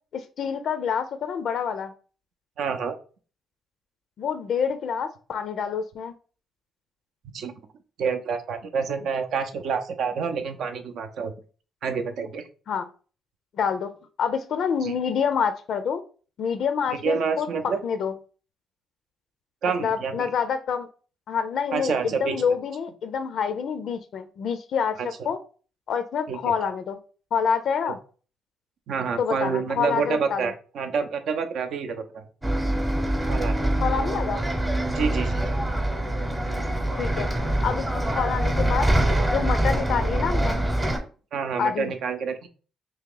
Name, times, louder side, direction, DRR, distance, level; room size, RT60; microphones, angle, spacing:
voice 1, 0.1-1.9 4.2-6.1 12.7-12.9 13.5-13.9 14.2-16.0 16.4-18.1 19.8-20.9 21.3-25.4 25.9-27.0 27.3-28.0 29.2-30.5 33.8-34.4 37.0-37.3 37.6-38.9 39.3-40.6 41.6-41.9, left 7 dB, 65° left, 9 dB, 0.4 m, -27 dB
voice 2, 2.6-3.0 7.3-7.5 8.0-11.3 11.8-12.4 14.8-14.9 17.0-17.8 19.6-20.3 21.7-22.4 25.0-25.1 26.3-26.4 27.8-27.9 28.9-32.2 33.3-33.7 34.8-35.5 41.3-42.5, right 6 dB, 70° right, 6 dB, 0.5 m, -28 dB
Bus, 32.4-41.0, right 1 dB, 15° right, 0.8 m, -24 dB
2.8 x 2.8 x 3.7 m, 0.38 s
cardioid pair, 90°, 0 cm